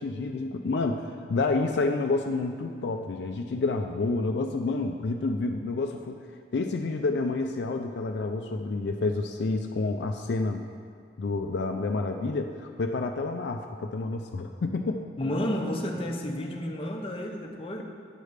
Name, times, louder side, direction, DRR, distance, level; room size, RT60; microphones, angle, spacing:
voice 1, 0.0-6.2 6.5-10.6 11.2-15.0, left 3 dB, 65° left, 4 dB, 0.4 m, -29 dB
voice 2, 15.2-17.8, left 1 dB, 30° left, 1 dB, 0.7 m, -31 dB
9.7 x 3.3 x 6.5 m, 2.2 s
head